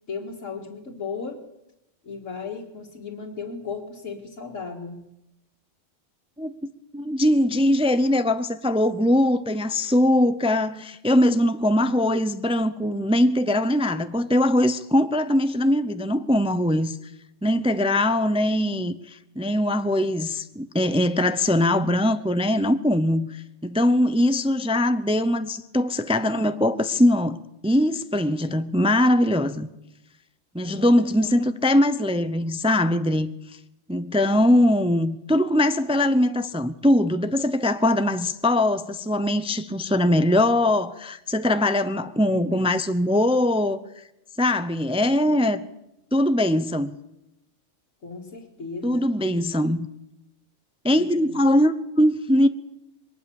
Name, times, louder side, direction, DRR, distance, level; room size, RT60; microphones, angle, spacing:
voice 1, 0.1-1.4 2.0-5.0 30.7-30.9 31.2-31.3 45.2-45.4 48.0-49.0 50.9-51.4, left 5 dB, 90° left, 2.3 m, -36 dB
voice 2, 6.9-17.0 17.4-27.4 27.6-29.7 30.5-33.3 33.9-43.8 44.4-45.6 46.1-46.9 48.8-49.9 50.8-52.5, left 1 dB, 5° right, 0.5 m, -21 dB
22.0 x 19.0 x 7.1 m
omnidirectional pair, 1.3 m